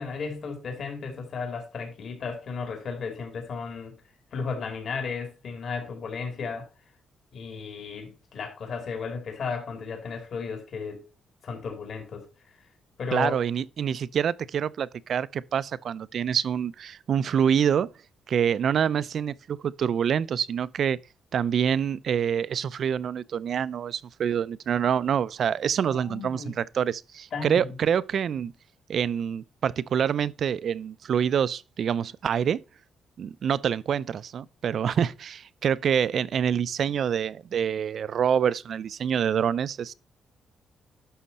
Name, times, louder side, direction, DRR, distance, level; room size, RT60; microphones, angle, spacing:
voice 1, 0.0-3.9 4.3-6.7 7.3-11.0 11.4-12.3 13.0-13.4 25.9-26.5 27.3-27.8, left 5 dB, 50° left, 2.6 m, -34 dB
voice 2, 13.1-17.9 18.3-21.0 21.3-28.5 28.9-32.6 33.2-39.9, right 8 dB, 50° right, 0.4 m, -26 dB
11.5 x 6.4 x 4.1 m
cardioid pair, 155°, 0 cm